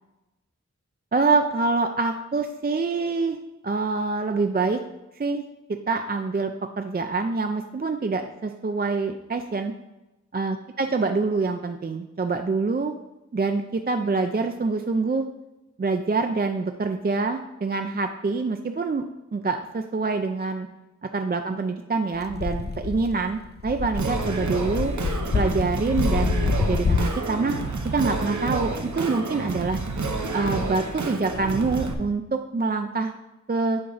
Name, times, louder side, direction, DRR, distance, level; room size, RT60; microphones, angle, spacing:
voice 1, 1.1-3.4 3.6-4.8 5.2-5.4 5.7-6.5 6.8-9.7 10.3-12.9 13.3-15.3 15.8-19.0 19.3-20.7 21.1-24.9 25.3-27.6 27.9-29.8 30.3-33.1 33.5-33.8, right 4 dB, 35° right, 6 dB, 0.4 m, -25 dB
sound 1, 22.2-27.2, left 4 dB, 35° left, 0.4 m, -27 dB
Singing, 23.9-31.9, right 3 dB, 70° right, 0.8 m, -29 dB
7.7 x 4.6 x 4.0 m, 1.0 s
wide cardioid pair, 55°, 30 cm